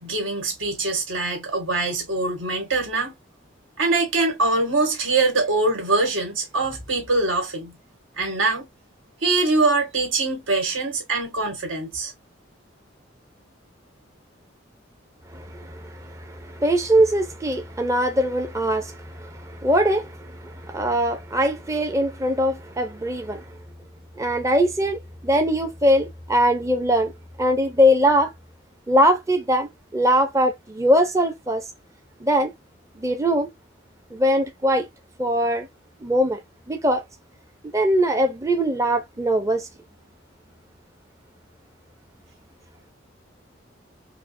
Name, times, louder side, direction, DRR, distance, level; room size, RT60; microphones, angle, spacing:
voice 1, 0.0-3.1 3.8-7.8 8.2-8.6 9.2-12.1, right 3 dB, 85° right, 1.6 m, -23 dB
voice 2, 15.3-23.5 24.2-27.1 27.4-28.3 28.9-31.6 32.2-32.5 33.0-33.5 34.1-34.9 35.2-35.7 36.0-36.4 36.7-37.0 37.6-39.7, equal, 15° right, 0.5 m, -21 dB
4.7 x 2.0 x 2.5 m
head